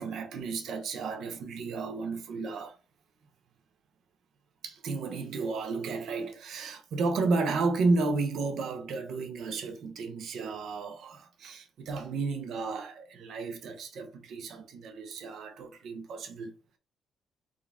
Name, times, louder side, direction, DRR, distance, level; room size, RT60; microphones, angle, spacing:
voice 1, 0.0-2.8 4.6-16.5, right 3 dB, 70° right, 0.8 m, -32 dB
3.7 x 2.3 x 3.5 m
cardioid pair, 90°, 0 cm